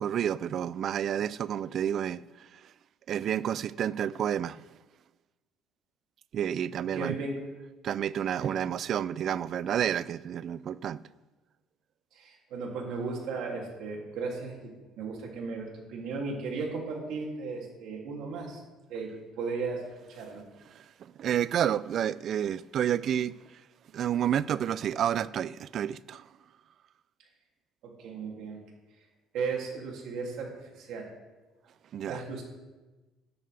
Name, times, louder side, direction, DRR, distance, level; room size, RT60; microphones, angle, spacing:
voice 1, 0.0-2.6 3.1-4.6 6.3-7.2 7.8-11.0 20.7-23.3 23.9-26.3 31.9-32.2, right 9 dB, 55° right, 0.3 m, -30 dB
voice 2, 6.9-7.4 8.3-8.6 12.1-18.6 18.9-20.4 27.8-28.6 29.3-31.1 32.1-32.4, right 4 dB, 70° right, 2.7 m, -36 dB
12.5 x 11.0 x 3.4 m
cardioid pair, 105°, 0 cm